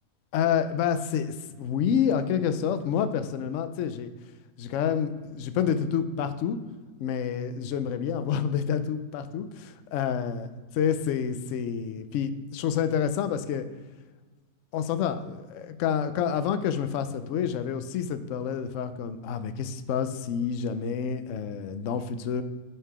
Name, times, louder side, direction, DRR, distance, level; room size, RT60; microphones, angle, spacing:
voice 1, 0.3-4.1 4.6-6.6 7.0-10.5 10.8-13.7 14.7-22.4, left 8 dB, 65° left, 11 dB, 0.8 m, -28 dB
5.5 x 5.5 x 4.8 m, 1.3 s
omnidirectional pair, 1.6 m